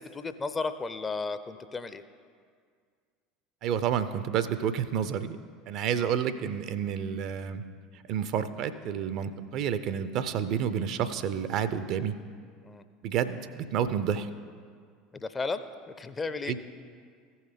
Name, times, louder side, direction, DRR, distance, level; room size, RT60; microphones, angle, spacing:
voice 1, 0.0-2.0 6.0-6.1 12.6-12.8 15.1-15.6 16.0-16.5, left 4 dB, 20° left, 11 dB, 0.5 m, -34 dB
voice 2, 3.6-5.4 5.7-7.6 8.1-12.1 13.0-14.3 16.5-16.6, right 8 dB, 50° right, 12 dB, 0.5 m, -29 dB
15.0 x 5.5 x 5.1 m, 2.1 s
figure-of-eight pair, 70°, 0 cm